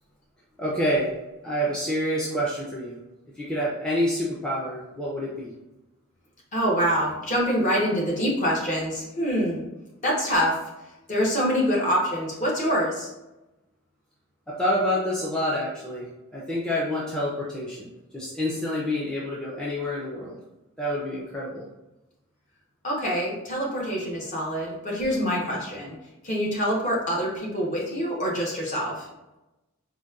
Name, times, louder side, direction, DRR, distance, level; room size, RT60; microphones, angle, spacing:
voice 1, 0.6-1.1 1.4-3.0 3.4-5.5 14.5-16.1 16.3-20.4 20.8-21.6, equal, 5° left, -7 dB, 0.4 m, -27 dB
voice 2, 6.5-9.6 10.0-10.6 11.1-13.1 22.8-26.0 26.2-29.1, equal, 35° left, -3 dB, 0.9 m, -25 dB
4.0 x 2.2 x 2.3 m, 0.98 s
head